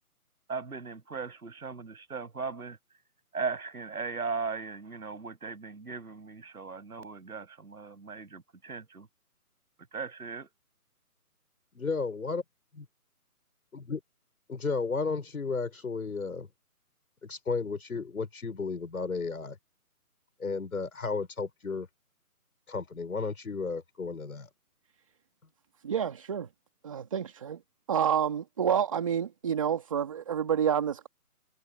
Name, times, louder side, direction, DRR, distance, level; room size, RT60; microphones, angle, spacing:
voice 1, 0.5-2.8 3.3-9.1 9.9-10.5, right 4 dB, 70° right, 8.0 m, -38 dB
voice 2, 11.7-12.4 12.8-12.9 13.9-14.0 14.5-16.5 17.2-19.6 20.4-21.9 22.7-24.5, left 4 dB, 65° left, 6.4 m, -33 dB
voice 3, 25.8-26.5 26.8-27.6 27.9-31.1, right 8 dB, 20° right, 2.5 m, -28 dB
hypercardioid pair, 175°, 45 cm